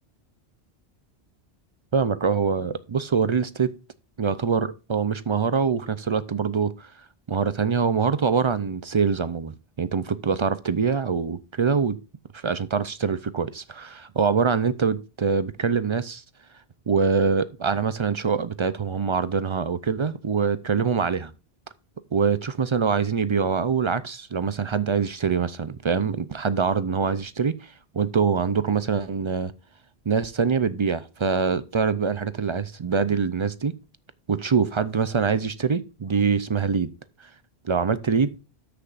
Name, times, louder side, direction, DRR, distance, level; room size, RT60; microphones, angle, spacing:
voice 1, 1.9-3.7 4.2-6.9 7.3-12.0 12.3-16.2 16.9-21.3 22.1-29.5 30.1-33.7 34.3-36.9 37.6-38.4, right 5 dB, 40° right, 0.4 m, -24 dB
13.0 x 6.8 x 2.5 m
omnidirectional pair, 1.1 m